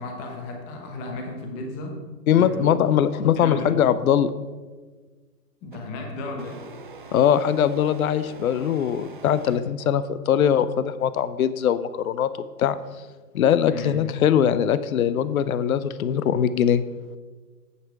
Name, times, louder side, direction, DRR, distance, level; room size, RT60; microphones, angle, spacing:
voice 1, 0.0-2.0 2.3-2.8 3.4-3.9 5.6-6.6 13.6-14.0, left 2 dB, 15° left, 2 dB, 0.9 m, -34 dB
voice 2, 2.3-4.3 7.1-12.3 12.6-12.8 13.3-16.8, left 9 dB, 60° left, 14 dB, 0.6 m, -21 dB
sound 1, 5.7-5.9 6.4-10.0, right 4 dB, 35° right, 0.4 m, -44 dB
8.5 x 7.5 x 4.7 m, 1.4 s
hypercardioid pair, 145°, 48 cm